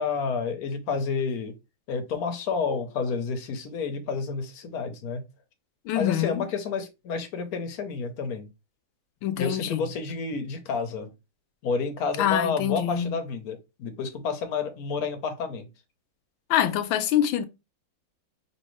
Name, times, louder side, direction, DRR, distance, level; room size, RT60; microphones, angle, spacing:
voice 1, 0.0-1.5 1.9-5.3 5.9-8.5 9.4-11.1 11.6-15.7, left 5 dB, 60° left, 1.1 m, -30 dB
voice 2, 5.8-6.5 9.2-9.8 12.2-13.2 16.5-17.4, left 11 dB, 85° left, 1.4 m, -25 dB
5.4 x 3.0 x 3.1 m
omnidirectional pair, 2.2 m